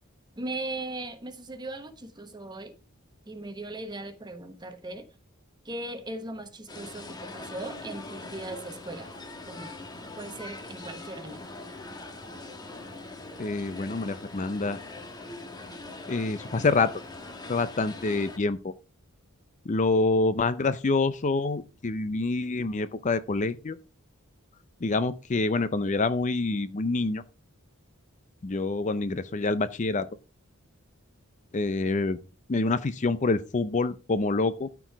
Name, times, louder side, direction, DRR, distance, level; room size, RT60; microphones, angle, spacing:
voice 1, 0.4-2.7 3.3-5.1 5.6-9.1 9.5-9.8 10.1-11.5, right 2 dB, 20° right, 1.1 m, -38 dB
sound 1, 6.7-18.4, left 2 dB, 20° left, 1.3 m, -42 dB
voice 2, 13.4-14.8 16.1-16.9 17.5-18.7 19.7-23.8 24.8-27.2 28.4-30.1 31.5-32.2 32.5-34.7, left 3 dB, 35° left, 0.5 m, -26 dB
13.0 x 4.6 x 4.6 m
head